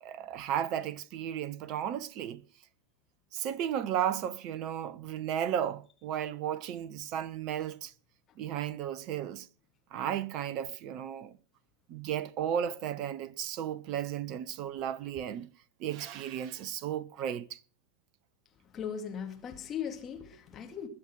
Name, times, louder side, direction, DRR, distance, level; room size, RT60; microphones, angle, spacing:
voice 1, 0.0-2.4 3.3-7.9 8.4-9.5 9.9-11.4 11.9-15.5 15.8-17.6, right 10 dB, 40° right, 0.8 m, -34 dB
voice 2, 18.7-20.9, left 8 dB, 25° left, 2.3 m, -38 dB
21.0 x 7.4 x 6.1 m
figure-of-eight pair, 90°, 0 cm